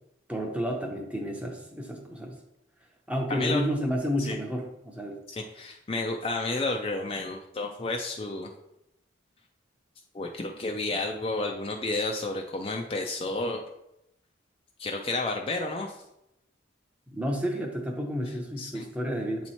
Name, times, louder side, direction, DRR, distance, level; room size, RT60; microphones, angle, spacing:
voice 1, 0.3-2.4 3.1-5.2 17.1-19.5, equal, 5° right, 1 dB, 0.7 m, -31 dB
voice 2, 3.3-3.6 4.2-4.4 5.3-8.5 10.1-13.6 14.8-16.0 18.6-18.8, left 2 dB, 30° left, 2 dB, 0.4 m, -31 dB
7.7 x 3.0 x 4.2 m, 0.86 s
head